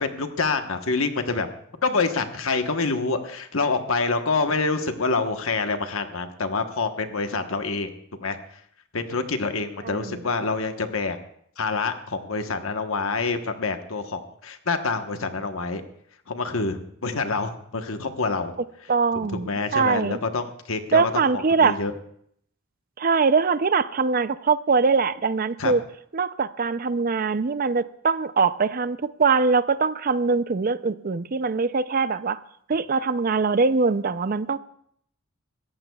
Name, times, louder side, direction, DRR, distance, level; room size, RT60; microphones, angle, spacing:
voice 1, 0.0-1.5 1.8-7.9 8.2-8.4 8.9-11.2 11.6-15.8 16.3-18.5 19.5-21.9 25.6-25.7, left 4 dB, 75° left, 7 dB, 1.2 m, -26 dB
voice 2, 9.8-10.2 18.9-20.2 20.9-21.8 23.0-25.8 26.1-32.4 32.7-34.6, right 4 dB, 40° right, 14 dB, 0.5 m, -22 dB
26.0 x 14.5 x 2.3 m, 0.67 s
head